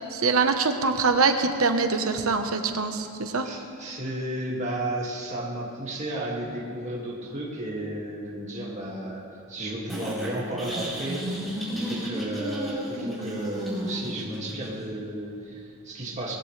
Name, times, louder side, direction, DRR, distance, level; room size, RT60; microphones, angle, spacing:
voice 1, 0.1-3.5, right 4 dB, 75° right, 6 dB, 1.1 m, -24 dB
voice 2, 3.4-11.4 11.7-16.3, right 1 dB, 35° right, -3 dB, 2.2 m, -33 dB
sound 1, 9.9-14.9, equal, ahead, 4.5 m, -33 dB
20.5 x 15.0 x 3.3 m, 2.6 s
head